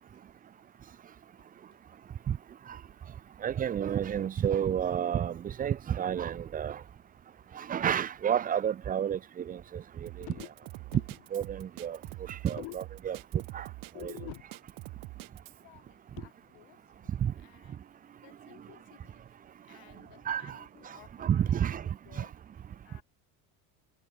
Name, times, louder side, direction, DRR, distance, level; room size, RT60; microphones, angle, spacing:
voice 1, 3.4-6.8 7.5-10.3 11.3-12.0 12.3-13.2 13.5-13.7 14.0-14.1 17.2-17.3 20.3-20.6 21.2-21.9 22.2-22.3, right 9 dB, 20° right, 0.4 m, -30 dB
Drum kit, 10.1-15.6, right 21 dB, 50° right, 0.7 m, -45 dB
voice 2, 10.2-10.5 10.9-11.1 12.5-12.8 13.9-14.5 15.5-16.9 17.4-17.8 18.2-19.2 19.6-22.3 22.8-23.0, left 32 dB, 70° left, 1.8 m, -50 dB
supercardioid pair, 110°, 44 cm